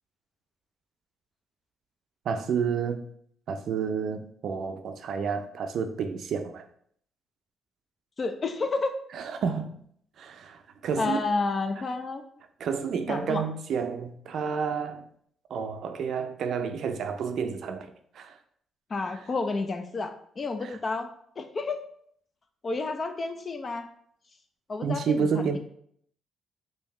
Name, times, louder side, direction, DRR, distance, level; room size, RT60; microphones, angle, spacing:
voice 1, 2.3-3.0 3.5-6.6 9.1-9.8 10.2-11.2 12.6-15.0 15.5-18.3 20.6-20.8 24.8-25.6, right 6 dB, 65° right, 0.4 m, -30 dB
voice 2, 8.2-8.9 11.0-12.2 13.1-13.4 18.9-21.1 21.4-21.8 22.6-23.9 24.7-25.6, left 3 dB, 40° left, 0.4 m, -30 dB
3.4 x 2.7 x 3.2 m
cardioid pair, 90°, 0 cm